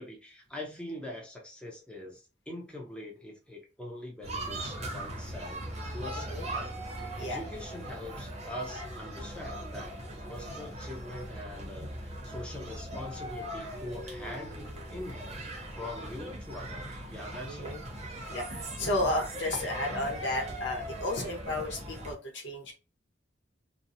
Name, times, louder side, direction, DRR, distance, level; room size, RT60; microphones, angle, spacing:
voice 1, 0.0-6.7 7.2-10.0 10.3-14.5 14.9-15.4 15.7-17.7, left 1 dB, 5° left, -1 dB, 0.6 m, -43 dB
sound 1, 4.2-22.1, right 1 dB, 35° right, 0.6 m, -40 dB
voice 2, 6.1-6.5 7.2-7.4 17.5-17.8 18.3-22.7, left 1 dB, 90° left, 0 dB, 0.9 m, -33 dB
2.6 x 2.0 x 2.6 m, 0.32 s
head